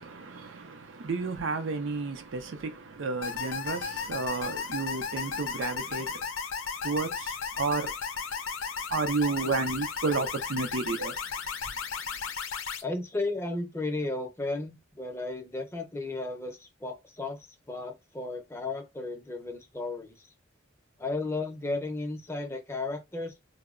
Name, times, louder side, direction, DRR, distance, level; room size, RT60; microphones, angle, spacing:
voice 1, 0.0-6.3 6.8-7.9 8.9-11.2, right 4 dB, 70° right, 0.5 m, -32 dB
sound 1, 3.2-12.8, left 6 dB, 80° left, 0.5 m, -35 dB
voice 2, 12.8-20.3 21.0-23.4, left 2 dB, 15° left, 0.5 m, -34 dB
2.1 x 2.0 x 3.6 m
head